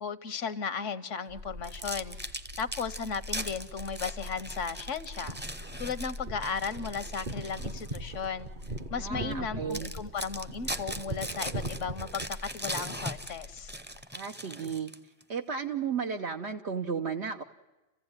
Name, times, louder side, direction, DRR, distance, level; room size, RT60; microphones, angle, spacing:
voice 1, 0.0-2.2 2.6-5.4 5.8-8.5 8.9-13.8, left 6 dB, 75° left, 13 dB, 1.3 m, -35 dB
sound 1, 1.3-14.1, left 2 dB, 80° right, 2.4 m, -45 dB
sound 2, 1.6-8.1 8.6-8.8 9.3-9.4 9.7-15.2, right 1 dB, 10° right, 0.8 m, -40 dB
sound 3, 5.0-12.2, right 2 dB, 40° right, 1.0 m, -41 dB
voice 2, 9.0-9.9 14.1-14.9 15.3-17.4, right 6 dB, 65° right, 3 dB, 1.2 m, -34 dB
29.5 x 15.5 x 9.7 m, 1.1 s
omnidirectional pair, 1.3 m